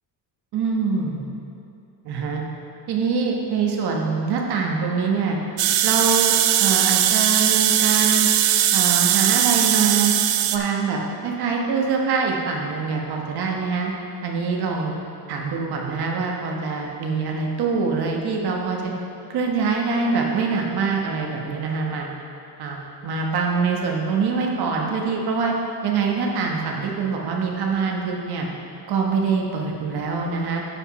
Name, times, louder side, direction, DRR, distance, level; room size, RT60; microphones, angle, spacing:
voice 1, 0.5-1.2 2.0-2.4 2.9-5.4 5.8-6.3 6.6-8.3 8.7-10.1 10.5-13.9 14.2-15.0 15.3-18.9 19.3-22.1 22.6-25.5 25.8-28.5 28.9-30.6, right 5 dB, 60° right, 0 dB, 1.3 m, -24 dB
sound 1, 5.6-10.6, right 11 dB, 80° right, 0.6 m, -19 dB
11.5 x 4.9 x 4.2 m, 2.7 s
cardioid pair, 155°, 44 cm